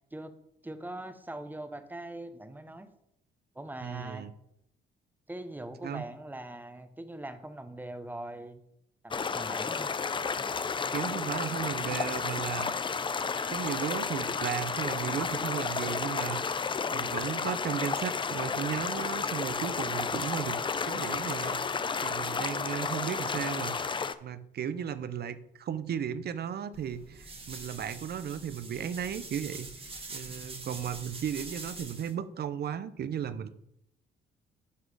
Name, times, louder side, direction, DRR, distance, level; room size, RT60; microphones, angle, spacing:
voice 1, 0.6-2.9 3.5-4.3 5.3-8.6 9.0-9.9, right 1 dB, 10° right, 9 dB, 0.9 m, -41 dB
voice 2, 3.8-4.3 5.8-6.1 10.9-12.7 13.5-16.4 16.9-20.6 20.9-21.6 22.0-29.7 30.1-33.5, right 8 dB, 55° right, 14 dB, 0.6 m, -35 dB
sound 1, 9.1-24.1, left 5 dB, 25° left, 0.4 m, -32 dB
sound 2, 26.7-32.1, right 3 dB, 30° right, 1.5 m, -44 dB
11.5 x 4.0 x 4.8 m, 0.77 s
cardioid pair, 90°, 20 cm